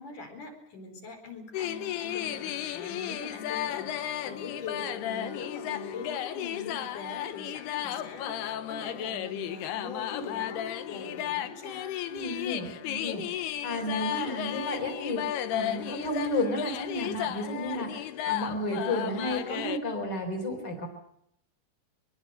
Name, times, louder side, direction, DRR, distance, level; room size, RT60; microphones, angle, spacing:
voice 1, 0.0-11.9, left 3 dB, 55° left, 4 dB, 6.0 m, -42 dB
sound 1, 1.5-19.8, left 11 dB, 85° left, 3.1 m, -34 dB
voice 2, 12.1-20.9, left 1 dB, 25° left, 5 dB, 4.6 m, -32 dB
23.5 x 22.0 x 6.6 m, 0.75 s
omnidirectional pair, 4.6 m